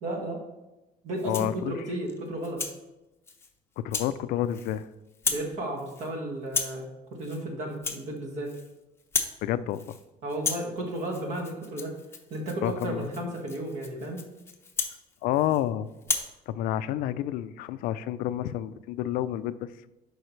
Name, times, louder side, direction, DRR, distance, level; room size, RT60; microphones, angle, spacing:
voice 1, 0.0-0.4 1.0-2.6 5.3-8.5 10.2-11.9 12.3-14.2, right 1 dB, 50° right, 1 dB, 1.7 m, -33 dB
Rattle (instrument), 1.1-1.6 2.1-2.8 3.3-3.5 3.9-4.1 4.4-4.8 5.1-5.5 5.8-6.1 6.5-6.8 7.2-7.4 7.7-8.7 9.0-9.4 9.7-10.0 10.3-15.6 16.0-16.3, left 4 dB, 15° left, 0.7 m, -34 dB
voice 2, 1.3-1.7 3.8-4.9 9.4-10.0 12.6-13.1 15.2-15.9 16.5-19.7, left 12 dB, 70° left, 14 dB, 0.4 m, -29 dB
11.0 x 4.9 x 3.2 m, 1.0 s
cardioid pair, 150°, 15 cm